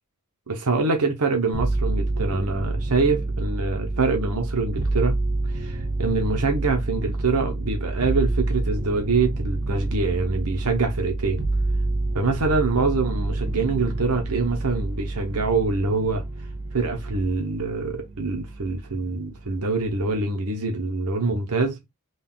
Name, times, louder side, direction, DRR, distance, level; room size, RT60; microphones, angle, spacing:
voice 1, 0.5-5.2 5.5-11.4 12.1-16.2 16.7-21.8, right 3 dB, 90° right, 0.9 m, -25 dB
sound 1, 1.5-19.0 19.3-20.1, right 2 dB, 55° right, 0.8 m, -28 dB
3.9 x 2.4 x 3.7 m
head